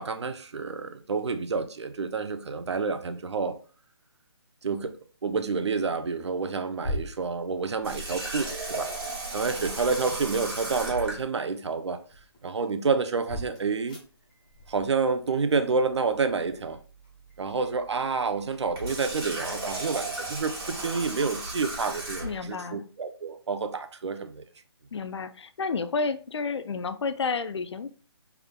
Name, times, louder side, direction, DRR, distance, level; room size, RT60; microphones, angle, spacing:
voice 1, 0.0-3.6 4.6-8.9 9.3-12.0 12.4-14.0 14.7-16.8 17.4-24.4, right 4 dB, 85° right, 0.6 m, -29 dB
sound 1, 2.6-3.0 4.8-5.7 6.1-6.3 6.8-8.8 9.5-10.9 11.3-21.8, left 1 dB, 15° left, 0.6 m, -44 dB
Water tap faucet, 7.8-11.2 18.6-22.5, right 2 dB, 55° right, 1.7 m, -35 dB
voice 2, 22.2-22.8 24.9-27.9, left 4 dB, 80° left, 0.4 m, -30 dB
3.6 x 3.4 x 2.2 m
hypercardioid pair, 175°, 14 cm